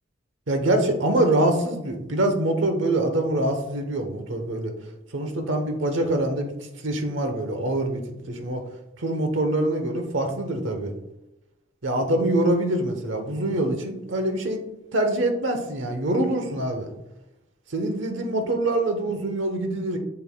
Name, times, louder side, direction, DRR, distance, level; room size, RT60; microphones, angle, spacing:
voice 1, 0.5-4.7 5.1-6.5 6.8-8.0 8.3-8.6 9.0-10.9 11.8-14.6 14.9-16.9 17.7-20.0, right 1 dB, 85° right, 5 dB, 1.0 m, -24 dB
6.9 x 6.8 x 2.3 m, 0.91 s
head